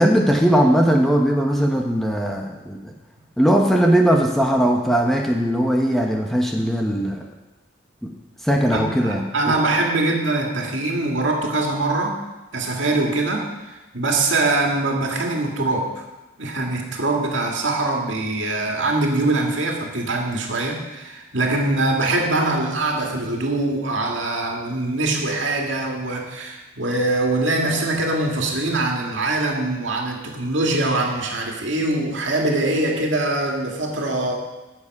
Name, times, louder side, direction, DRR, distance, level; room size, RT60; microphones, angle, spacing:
voice 1, 0.0-2.9 3.4-7.2 8.0-8.1 8.4-9.6, equal, ahead, 0 dB, 0.9 m, -19 dB
voice 2, 8.7-12.2 12.5-16.0 16.4-34.4, right 2 dB, 75° right, 1 dB, 2.1 m, -23 dB
14.0 x 7.5 x 5.4 m, 1.1 s
head